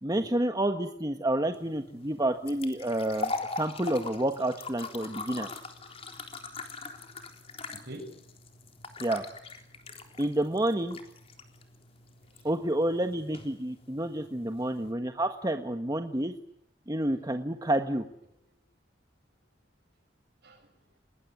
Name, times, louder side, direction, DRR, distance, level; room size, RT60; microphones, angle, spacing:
voice 1, 0.0-5.5 9.0-9.2 10.2-11.0 12.4-16.3 16.9-18.0, right 1 dB, 20° right, 6 dB, 1.5 m, -29 dB
sound 1, 1.5-14.9, left 3 dB, 35° left, 3.7 m, -42 dB
voice 2, 7.5-8.1 10.0-10.1 12.2-12.5 18.5-18.6 20.4-21.0, right 1 dB, 65° right, 6 dB, 7.2 m, -47 dB
30.0 x 20.0 x 9.6 m, 0.74 s
head